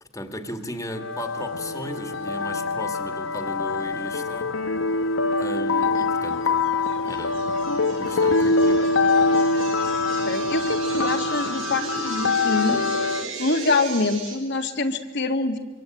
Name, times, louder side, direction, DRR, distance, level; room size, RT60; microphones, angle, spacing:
voice 1, 0.0-4.5 5.3-6.7 7.0-7.4 7.8-8.9, left 1 dB, 15° left, 7 dB, 2.2 m, -35 dB
sound 1, 0.9-13.3, left 3 dB, 80° left, 1.1 m, -24 dB
sound 2, 6.6-14.3, right 4 dB, 85° right, 5.6 m, -37 dB
voice 2, 10.1-13.1 13.4-15.6, left 3 dB, 60° left, 4 dB, 1.9 m, -25 dB
25.5 x 24.5 x 9.1 m, 1.2 s
head